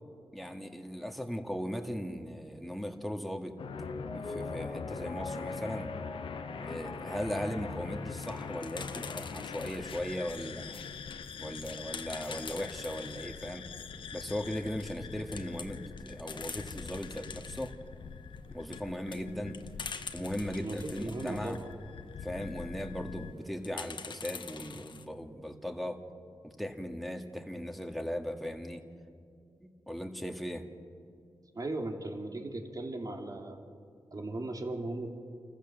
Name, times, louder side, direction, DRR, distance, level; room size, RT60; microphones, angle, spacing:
voice 1, 0.3-3.6 4.1-5.9 6.5-10.8 11.4-13.6 14.1-17.7 18.5-19.6 20.1-21.6 22.2-26.0 26.4-28.8 29.6-30.6, equal, ahead, 4 dB, 2.0 m, -38 dB
sound 1, 3.6-23.3, left 6 dB, 80° left, 0.9 m, -43 dB
Mallet percussion, 3.7-9.3 9.6-9.7, left 1 dB, 30° left, 1.6 m, -44 dB
sound 2, 7.9-10.0 10.5-13.3 13.7-13.8 14.0-14.1 14.5-15.0 15.3-17.7 18.4-21.6 22.6-22.9 23.6-25.0, left 5 dB, 65° left, 1.1 m, -45 dB
voice 2, 20.5-21.7 31.5-33.6 34.1-35.1, right 2 dB, 45° right, 3 dB, 2.6 m, -37 dB
28.0 x 15.0 x 7.3 m, 2.4 s
cardioid pair, 65°, 9 cm